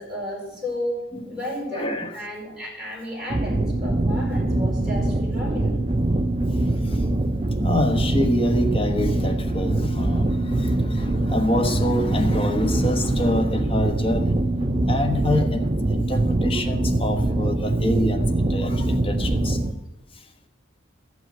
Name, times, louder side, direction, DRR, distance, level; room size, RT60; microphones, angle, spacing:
voice 1, 0.0-1.0 1.3-5.8, left 1 dB, 5° right, -4 dB, 4.9 m, -33 dB
voice 2, 1.7-2.2 6.6-7.1 7.6-14.4 14.9-19.6 20.1-20.2, left 1 dB, 25° left, 4 dB, 1.2 m, -26 dB
sound 1, 3.3-19.7, right 2 dB, 30° right, 0.6 m, -23 dB
13.5 x 6.0 x 8.6 m, 0.95 s
head